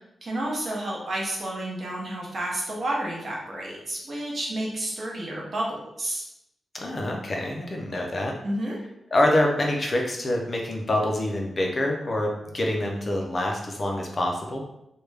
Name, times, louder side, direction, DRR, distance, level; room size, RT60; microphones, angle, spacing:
voice 1, 0.2-6.2 8.4-8.8, right 1 dB, 40° right, -3 dB, 0.8 m, -30 dB
voice 2, 6.7-8.3 9.1-14.6, left 1 dB, 35° left, 0 dB, 0.4 m, -26 dB
3.2 x 2.2 x 3.3 m, 0.82 s
wide cardioid pair, 155°, 0 cm